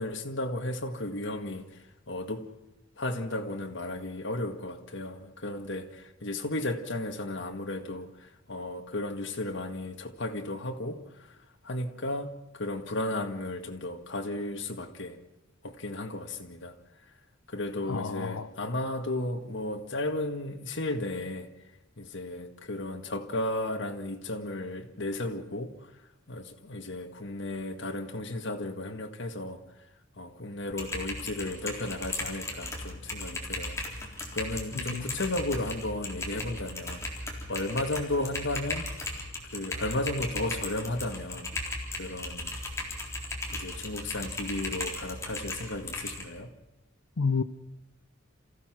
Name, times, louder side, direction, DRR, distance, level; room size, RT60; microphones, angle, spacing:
voice 1, 0.0-2.5 3.0-11.4 11.6-15.2 15.6-16.8 17.5-21.5 22.0-25.9 26.3-29.6 30.2-33.8 34.3-38.9 39.4-41.5 41.9-42.6 43.5-46.5, left 1 dB, 65° left, 1.9 m, -34 dB
voice 2, 17.9-18.3 34.9-35.0 47.2-47.4, left 5 dB, 85° left, 0.6 m, -28 dB
Typing, 30.7-46.2, left 2 dB, 15° left, 3.9 m, -37 dB
27.5 x 15.5 x 6.1 m
head